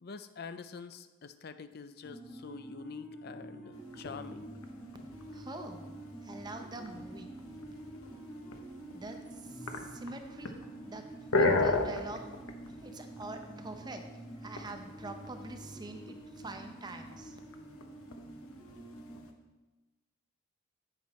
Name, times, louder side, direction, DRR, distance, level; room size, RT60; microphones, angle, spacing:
voice 1, 0.0-4.5, left 5 dB, 50° left, 10 dB, 0.5 m, -46 dB
sound 1, 2.0-19.2, right 1 dB, 5° left, 1.5 m, -48 dB
sound 2, 3.7-19.3, left 2 dB, 90° left, 0.9 m, -38 dB
voice 2, 5.3-5.9 6.2-7.3 8.9-10.5 10.8-12.3 12.7-14.1 14.4-17.4, right 2 dB, 20° right, 5 dB, 0.6 m, -45 dB
10.0 x 7.9 x 4.2 m, 1.2 s
head